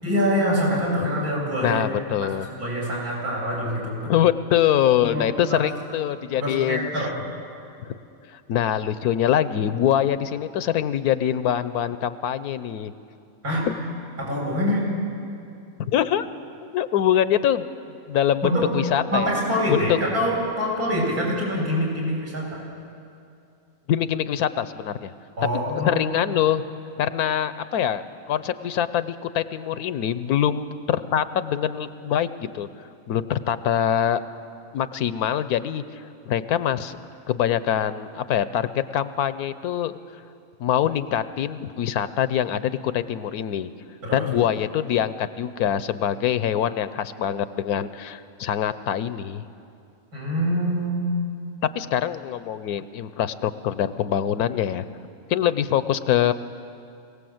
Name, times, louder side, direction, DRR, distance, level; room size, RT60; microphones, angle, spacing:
voice 1, 0.0-2.3 2.6-4.1 5.0-5.6 6.3-7.1 13.4-13.7 14.2-14.8 18.4-18.7 19.1-22.6 25.4-26.0 44.0-44.3 50.1-51.0, equal, 75° right, -5 dB, 7.2 m, -25 dB
voice 2, 1.6-2.5 4.0-6.9 7.9-8.0 8.3-12.9 15.9-16.3 16.7-17.6 18.1-19.4 19.7-20.0 23.9-25.1 25.8-26.6 27.0-28.0 28.3-32.7 33.1-34.2 34.7-35.8 36.3-37.0 37.3-40.0 40.6-43.7 44.1-49.4 51.7-54.8 55.3-56.3, left 10 dB, 80° left, 13 dB, 1.2 m, -24 dB
22.5 x 17.5 x 7.9 m, 2.5 s
omnidirectional pair, 1.6 m